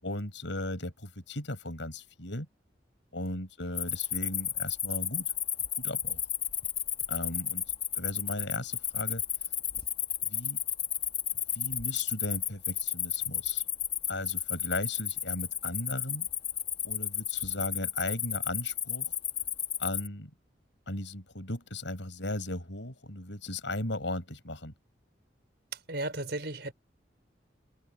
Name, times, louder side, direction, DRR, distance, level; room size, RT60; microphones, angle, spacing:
voice 1, 0.0-2.5 3.1-5.3 5.8-6.2 7.1-7.6 7.9-9.2 10.2-10.6 11.5-13.6 14.1-16.3 16.8-19.1 19.8-20.3 20.9-24.7, left 2 dB, 90° left, 6.2 m, -36 dB
Cricket, 3.7-20.1, left 9 dB, 30° left, 1.5 m, -32 dB
voice 2, 25.9-26.7, right 2 dB, 65° right, 5.0 m, -34 dB
head